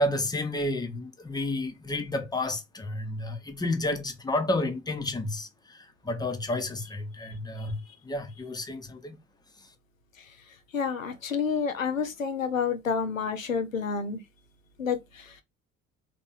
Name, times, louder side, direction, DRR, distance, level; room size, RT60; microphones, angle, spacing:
voice 1, 0.0-9.2, left 1 dB, 10° left, 1.0 m, -31 dB
voice 2, 10.7-14.2 14.8-15.4, left 6 dB, 85° left, 0.7 m, -29 dB
3.6 x 2.8 x 3.9 m
figure-of-eight pair, 60°, 39 cm